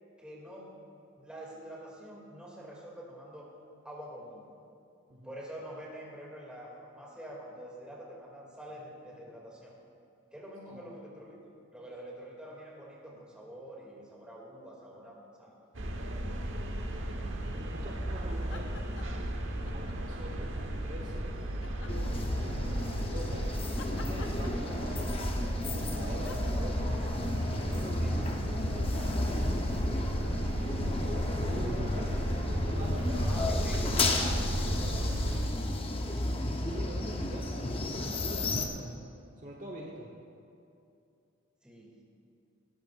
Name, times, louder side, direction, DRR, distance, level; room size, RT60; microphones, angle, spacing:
voice 1, 0.2-0.7 1.2-3.5 3.8-4.5 5.2-9.7 10.3-15.6 27.9-28.2 31.6-32.4 33.2-35.2 41.6-42.0, equal, 5° right, -4 dB, 2.4 m, -46 dB
sound 1, 15.7-35.5, right 1 dB, 70° right, 1.2 m, -35 dB
voice 2, 17.6-18.8 19.0-19.4 19.7-21.4 22.4-25.2 25.7-26.9 27.4-28.1 28.9-29.7 31.2-32.1 32.5-33.6 36.3-39.0 39.4-40.1, right 1 dB, 40° right, -1 dB, 1.1 m, -45 dB
sound 2, 18.4-19.3 19.6-20.6 21.6-22.8 23.8-25.1 26.2-26.5, left 4 dB, 65° left, 0.7 m, -49 dB
sound 3, 21.9-38.7, left 1 dB, 25° left, 0.8 m, -32 dB
18.0 x 13.5 x 2.5 m, 2.6 s
head